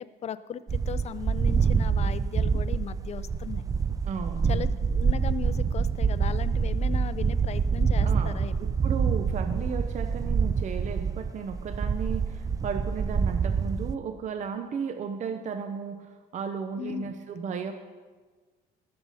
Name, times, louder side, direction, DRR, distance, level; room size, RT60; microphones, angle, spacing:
voice 1, 0.0-3.6 4.4-8.5 16.8-17.1, left 8 dB, 40° left, 14 dB, 0.5 m, -37 dB
sound 1, 0.7-13.9, right 5 dB, 20° right, 0.4 m, -26 dB
voice 2, 4.1-4.7 8.0-17.7, right 6 dB, 45° right, 7 dB, 0.7 m, -34 dB
20.0 x 6.8 x 4.1 m, 1.4 s
cardioid pair, 110°, 17 cm